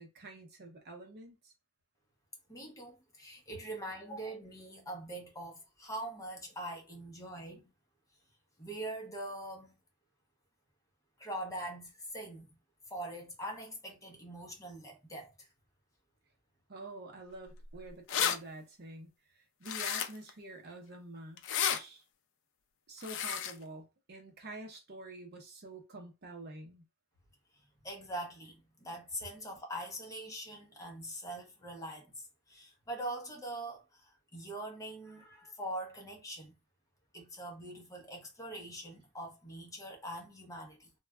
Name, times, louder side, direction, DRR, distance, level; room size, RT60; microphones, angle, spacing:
voice 1, 0.0-1.5 16.7-22.0 22.9-26.8, right 2 dB, 50° right, 0.8 m, -48 dB
voice 2, 2.5-7.7 8.6-9.8 11.2-12.5 12.9-15.3 27.8-36.5 37.1-40.9, right 1 dB, 15° left, 0.8 m, -43 dB
sound 1, 17.6-17.7 17.9-18.4 19.6-20.3 21.4-21.8 23.0-23.5, left 8 dB, 60° left, 0.4 m, -32 dB
3.2 x 2.3 x 2.3 m
head